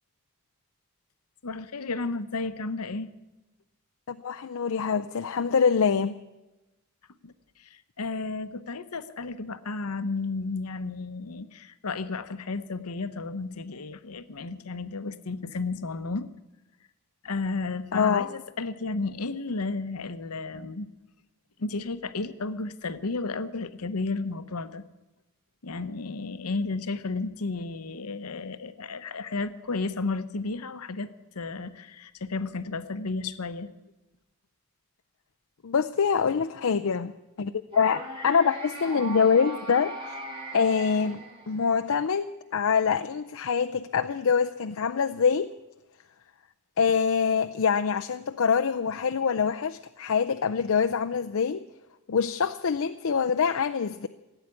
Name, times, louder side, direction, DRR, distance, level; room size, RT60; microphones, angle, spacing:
voice 1, 1.4-3.1 7.2-7.3 7.6-16.3 17.2-20.9 21.6-24.8 25.6-33.7, left 3 dB, 90° left, 13 dB, 0.9 m, -33 dB
voice 2, 4.1-6.2 17.9-18.3 35.6-37.1 37.4-40.2 40.5-45.5 46.8-51.6 52.1-54.1, left 6 dB, 70° left, 8 dB, 0.5 m, -25 dB
sound 1, 37.7-41.9, right 2 dB, 20° right, 2.6 m, -39 dB
16.5 x 9.0 x 9.8 m, 1.0 s
head